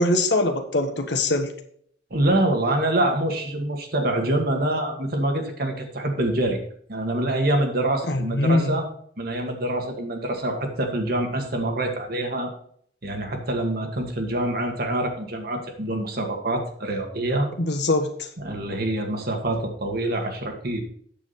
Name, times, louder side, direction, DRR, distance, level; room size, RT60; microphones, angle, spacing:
voice 1, 0.0-1.5 8.1-8.8 17.6-18.1, left 2 dB, 70° left, 4 dB, 1.4 m, -22 dB
voice 2, 2.1-6.6 6.9-8.9 9.2-12.5 13.0-17.5 18.4-20.8, right 1 dB, 60° right, 4 dB, 1.8 m, -25 dB
8.5 x 7.5 x 4.2 m, 0.62 s
head